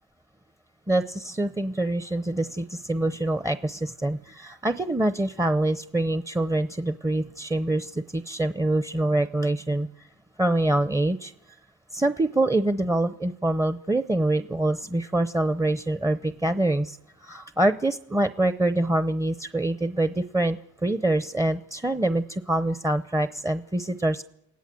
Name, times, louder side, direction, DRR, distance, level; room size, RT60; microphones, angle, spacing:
voice 1, 0.9-9.9 10.4-11.3 11.9-24.2, right 1 dB, 10° right, 11 dB, 0.8 m, -25 dB
28.0 x 17.5 x 7.8 m, 0.83 s
cardioid pair, 90°, 30 cm